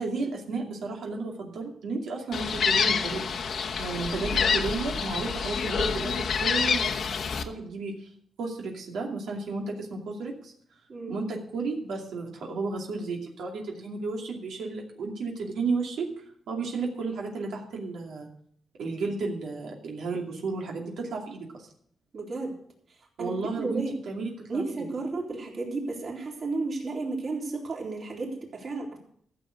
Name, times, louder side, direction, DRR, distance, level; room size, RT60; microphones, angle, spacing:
voice 1, 0.0-8.1 8.4-10.5 11.1-18.3 18.8-21.7 23.2-24.9, right 3 dB, 85° right, 0 dB, 2.5 m, -33 dB
Gull seagull, 2.3-7.4, left 6 dB, 60° left, 1.0 m, -27 dB
voice 2, 22.1-22.5 23.2-23.9 24.5-29.0, right 3 dB, 50° right, -2 dB, 3.8 m, -33 dB
14.0 x 7.1 x 6.6 m, 0.63 s
cardioid pair, 125°, 0 cm